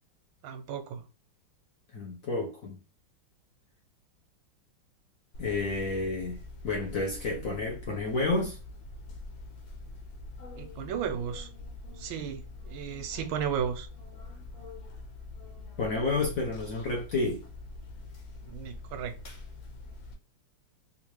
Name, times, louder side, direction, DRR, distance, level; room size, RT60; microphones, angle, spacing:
voice 1, 0.4-1.0 10.6-11.5 12.0-13.9 18.5-19.1, right 8 dB, 90° right, 1.4 m, -34 dB
voice 2, 1.9-2.8 5.4-6.4 6.6-8.6 15.8-17.4, left 3 dB, 65° left, 0.8 m, -30 dB
sound 1, 5.3-20.1, left 2 dB, 85° left, 1.7 m, -44 dB
3.6 x 2.5 x 3.0 m
omnidirectional pair, 2.2 m